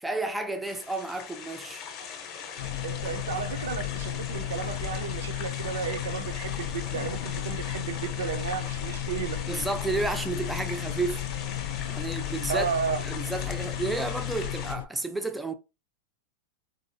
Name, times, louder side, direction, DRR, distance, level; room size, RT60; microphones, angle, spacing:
voice 1, 0.0-1.9 9.5-11.2 11.9-12.7 13.0-15.5, right 2 dB, 5° right, 0.4 m, -31 dB
sound 1, 0.6-14.7, left 7 dB, 35° left, 0.7 m, -40 dB
sound 2, 2.6-14.9, left 11 dB, 65° left, 0.3 m, -34 dB
voice 2, 2.8-9.4 12.5-13.0, right 7 dB, 90° right, 0.6 m, -33 dB
4.0 x 2.4 x 2.6 m
supercardioid pair, 155°, 0 cm